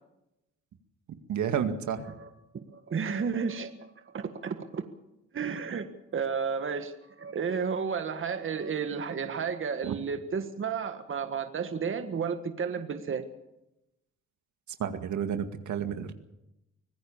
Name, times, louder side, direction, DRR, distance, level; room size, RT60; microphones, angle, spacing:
voice 1, 1.3-2.0 9.8-9.9 14.8-16.1, right 8 dB, 70° right, 7 dB, 2.1 m, -30 dB
voice 2, 2.5-4.8 5.3-5.9 6.1-13.2, right 6 dB, 40° right, 8 dB, 1.7 m, -32 dB
25.0 x 17.0 x 7.2 m, 0.91 s
cardioid pair, 90°, 30 cm